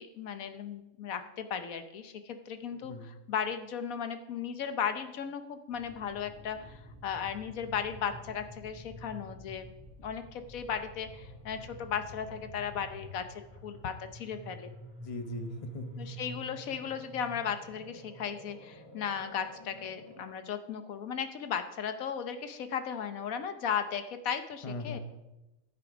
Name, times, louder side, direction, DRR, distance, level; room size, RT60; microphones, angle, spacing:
voice 1, 0.0-9.7 10.0-14.7 16.0-25.0, left 7 dB, 75° left, 9 dB, 1.2 m, -36 dB
voice 2, 2.8-3.1 15.0-16.2 24.6-25.0, left 2 dB, 25° left, 8 dB, 0.9 m, -40 dB
sound 1, 5.7-20.2, right 1 dB, 10° left, 2.6 m, -49 dB
11.5 x 9.6 x 5.0 m, 0.99 s
omnidirectional pair, 1.5 m